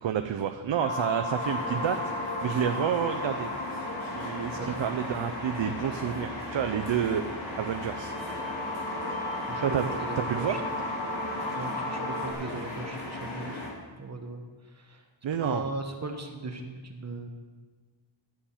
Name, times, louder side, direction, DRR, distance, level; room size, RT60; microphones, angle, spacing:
voice 1, 0.0-2.0 2.4-3.5 4.1-7.2 7.6-8.1 9.6-9.9 10.2-10.6 15.2-15.6, right 9 dB, 70° right, 7 dB, 0.7 m, -29 dB
sound 1, 0.8-12.3, left 1 dB, 60° left, 2.5 m, -36 dB
sound 2, 1.4-13.7, left 1 dB, 80° left, 3.7 m, -37 dB
voice 2, 10.0-10.6 11.5-13.6 14.0-14.4 14.8-15.0 15.4-17.3, right 2 dB, 35° right, 4 dB, 1.3 m, -37 dB
11.5 x 8.5 x 5.7 m, 1.4 s
wide cardioid pair, 130°, 47 cm